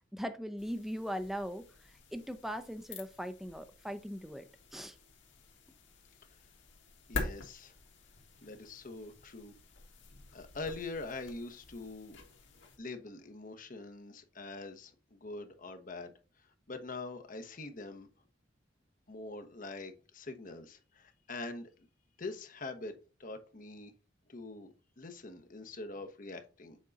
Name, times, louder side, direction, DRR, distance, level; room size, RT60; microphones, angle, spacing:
voice 1, 0.1-4.4 4.7-5.0, equal, ahead, 9 dB, 0.5 m, -40 dB
sound 1, 0.6-12.8, left 3 dB, 80° left, 1.6 m, -47 dB
voice 2, 7.1-7.7 8.4-9.5 10.3-12.2 12.8-18.1 19.1-21.7 22.2-22.9 23.2-23.9 24.3-26.8, left 3 dB, 45° left, 7 dB, 1.0 m, -44 dB
7.4 x 3.7 x 3.9 m, 0.33 s
head